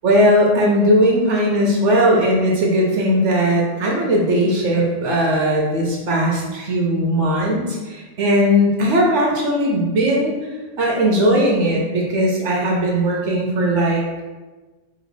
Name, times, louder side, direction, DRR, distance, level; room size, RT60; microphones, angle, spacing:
voice 1, 0.0-10.4 10.8-14.0, equal, 60° right, -2 dB, 0.8 m, -18 dB
3.1 x 3.0 x 4.0 m, 1.2 s
omnidirectional pair, 1.7 m